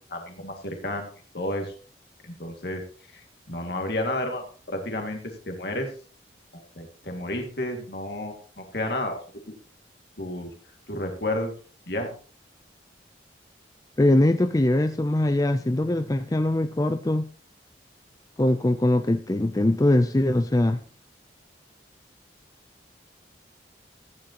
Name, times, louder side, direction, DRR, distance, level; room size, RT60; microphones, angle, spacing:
voice 1, 0.1-1.7 2.2-2.8 3.1-5.9 6.5-9.2 10.2-10.5 10.9-11.5 11.9-12.1, left 1 dB, 60° left, 3 dB, 2.1 m, -31 dB
voice 2, 14.0-17.3 18.4-20.8, left 1 dB, 20° left, 9 dB, 0.4 m, -22 dB
14.0 x 10.0 x 2.9 m, 0.40 s
head